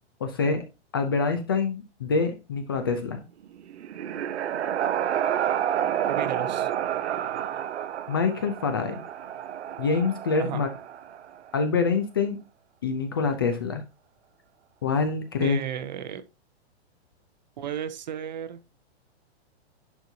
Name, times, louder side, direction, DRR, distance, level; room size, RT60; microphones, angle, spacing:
voice 1, 0.2-0.6 0.9-3.2 8.1-9.0 9.8-10.7 11.5-12.4 12.8-13.8 14.8-15.6, left 4 dB, 20° left, 0.5 m, -25 dB
sound 1, 3.5-11.4, right 10 dB, 80° right, 0.8 m, -29 dB
voice 2, 6.1-6.7 10.4-10.6 15.4-16.2 17.6-18.6, right 9 dB, 40° right, 0.7 m, -33 dB
10.5 x 4.5 x 2.7 m
hypercardioid pair, 180°, 33 cm